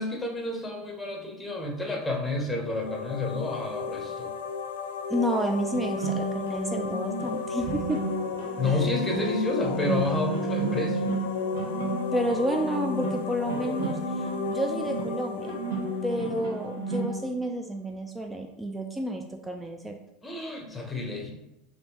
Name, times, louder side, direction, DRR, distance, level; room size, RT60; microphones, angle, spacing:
voice 1, 0.0-4.3 8.6-11.1 20.2-21.3, left 2 dB, 15° left, 2 dB, 0.8 m, -30 dB
sound 1, 2.6-17.3, left 6 dB, 85° left, 0.3 m, -34 dB
voice 2, 5.1-8.0 12.1-15.5 16.0-19.9, right 1 dB, 10° right, 3 dB, 0.3 m, -30 dB
sound 2, 5.7-17.2, right 3 dB, 80° right, 0.7 m, -32 dB
3.4 x 2.6 x 2.8 m, 0.90 s
hypercardioid pair, 100°, 0 cm